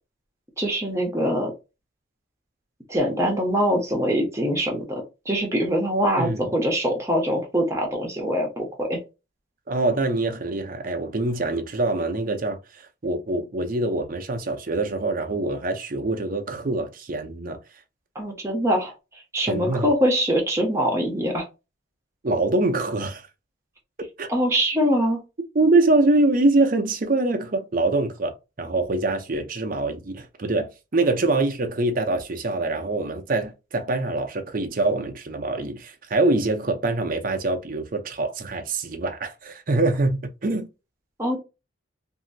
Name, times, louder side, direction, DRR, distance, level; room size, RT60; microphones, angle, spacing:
voice 1, 0.6-1.5 2.9-9.0 18.1-18.9 19.3-21.5 24.3-25.2 41.2-41.4, equal, 15° right, 1.0 m, -23 dB
voice 2, 6.2-6.5 9.7-17.6 19.5-19.9 22.2-23.3 24.2-24.3 25.5-40.7, right 2 dB, 45° right, 0.6 m, -24 dB
3.0 x 2.7 x 2.6 m
head